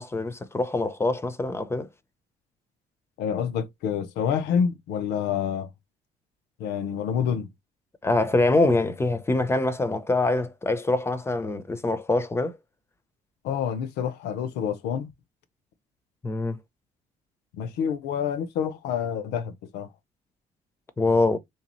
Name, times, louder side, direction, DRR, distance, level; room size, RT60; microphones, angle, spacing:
voice 1, 0.0-1.9 8.0-12.5 16.2-16.6 21.0-21.4, left 2 dB, 15° left, 0.6 m, -24 dB
voice 2, 3.2-5.7 6.6-7.5 13.4-15.1 17.5-19.9, left 7 dB, 85° left, 0.8 m, -28 dB
3.3 x 2.9 x 3.0 m
cardioid pair, 110°, 17 cm